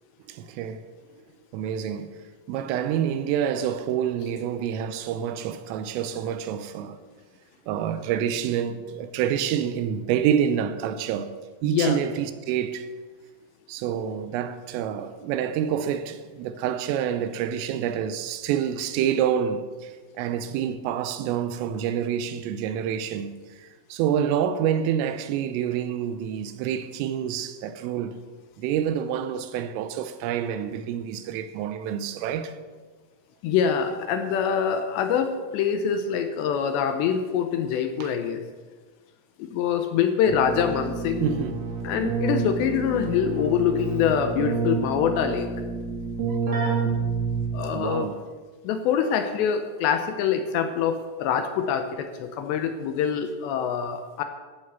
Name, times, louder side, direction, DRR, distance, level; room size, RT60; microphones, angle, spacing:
voice 1, 0.3-0.8 1.5-2.2 2.5-7.0 7.7-11.3 11.6-12.9 13.7-28.2 28.6-32.6 38.0-38.1 41.2-41.6 46.3-46.6 47.7-48.2, right 9 dB, 85° right, 3.3 m, -27 dB
voice 2, 11.6-12.0 33.4-38.4 39.4-41.5 41.8-45.5 47.5-48.1 48.6-54.2, left 7 dB, 80° left, 2.6 m, -25 dB
Keyboard (musical), 40.3-47.8, right 5 dB, 40° right, 2.1 m, -29 dB
15.5 x 8.2 x 7.0 m
omnidirectional pair, 5.9 m